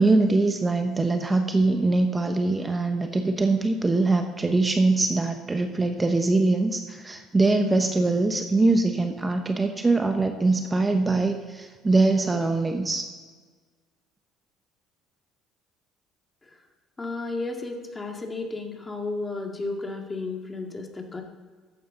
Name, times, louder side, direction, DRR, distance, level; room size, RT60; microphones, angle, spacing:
voice 1, 0.0-13.1, right 3 dB, 20° right, 6 dB, 1.0 m, -23 dB
voice 2, 17.0-21.2, left 3 dB, 20° left, 2 dB, 2.1 m, -33 dB
13.5 x 9.3 x 3.9 m, 1.5 s
hypercardioid pair, 70°, 0 cm